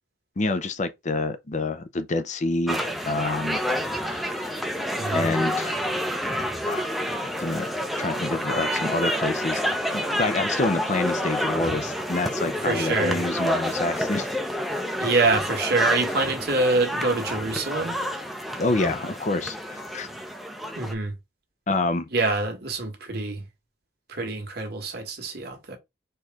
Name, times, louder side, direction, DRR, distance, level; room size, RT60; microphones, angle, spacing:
voice 1, 0.4-3.6 4.0-4.7 5.1-5.8 6.6-7.0 7.4-7.7 8.0-9.7 9.9-14.3 18.6-20.1 21.7-22.1, left 2 dB, 40° left, 0.6 m, -27 dB
sound 1, 2.7-20.9, equal, ahead, 0.7 m, -29 dB
voice 2, 12.6-13.2 15.0-18.0 20.8-21.1 22.1-23.4 24.1-25.8, right 3 dB, 60° right, 1.6 m, -25 dB
4.5 x 3.2 x 3.6 m
head